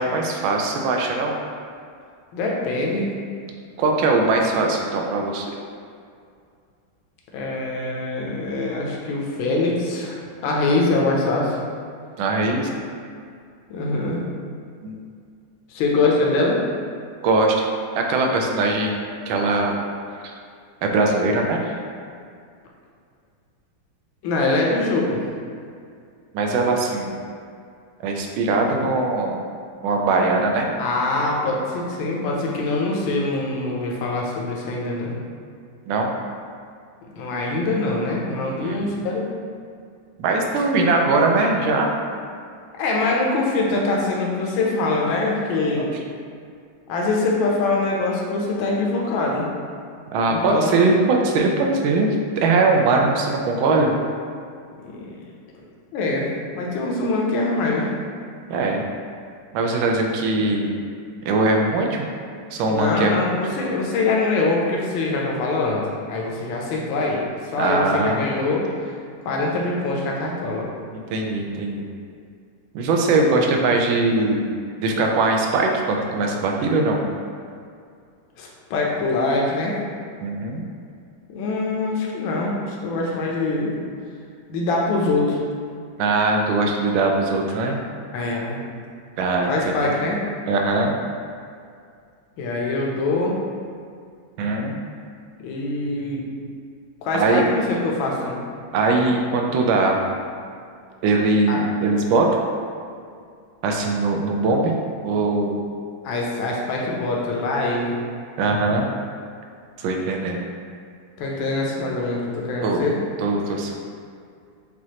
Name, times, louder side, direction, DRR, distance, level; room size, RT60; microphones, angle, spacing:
voice 1, 0.0-1.4 3.8-5.5 12.2-12.8 14.8-15.0 17.2-17.7 17.9-19.8 20.2-20.3 20.8-21.7 26.3-27.2 28.0-29.4 29.8-30.7 35.9-36.1 38.6-38.8 40.2-42.0 45.8-45.9 50.1-53.9 58.5-58.8 59.5-60.8 61.2-62.1 62.5-63.2 67.6-68.3 71.1-71.8 72.7-74.5 74.8-77.0 80.2-80.6 86.0-87.8 89.2-90.0 90.5-90.9 94.4-94.8 97.1-97.4 98.7-100.0 101.0-102.4 103.6-104.7 105.0-105.6 108.4-108.9 109.8-110.4 112.6-112.8 113.2-113.8, right 3 dB, 75° right, 1 dB, 1.3 m, -21 dB
voice 2, 2.3-3.1 7.3-11.6 13.7-14.2 15.7-16.6 24.2-25.2 30.8-35.2 37.0-39.3 42.7-45.9 46.9-49.5 50.3-50.8 54.8-55.2 55.9-56.3 56.5-57.9 62.7-65.8 66.1-67.2 67.5-68.6 69.2-70.7 78.4-79.8 81.3-83.8 84.5-85.4 88.1-88.6 89.4-90.2 92.4-93.3 95.4-96.2 97.0-98.4 101.5-101.6 106.0-107.9 111.2-113.0, left 2 dB, 75° left, -2 dB, 1.4 m, -23 dB
6.1 x 2.4 x 2.8 m, 2.3 s
omnidirectional pair, 2.2 m